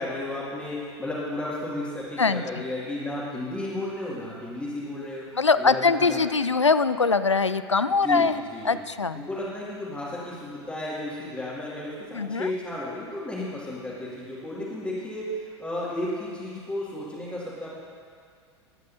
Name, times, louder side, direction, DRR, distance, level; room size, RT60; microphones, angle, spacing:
voice 1, 0.0-6.2 8.0-8.8 9.1-17.8, left 1 dB, 10° left, -10 dB, 2.6 m, -33 dB
voice 2, 5.3-8.4 8.6-9.3 12.1-12.5, left 4 dB, 90° left, 13 dB, 0.4 m, -22 dB
20.5 x 9.2 x 2.9 m, 2.1 s
figure-of-eight pair, 90°, 15 cm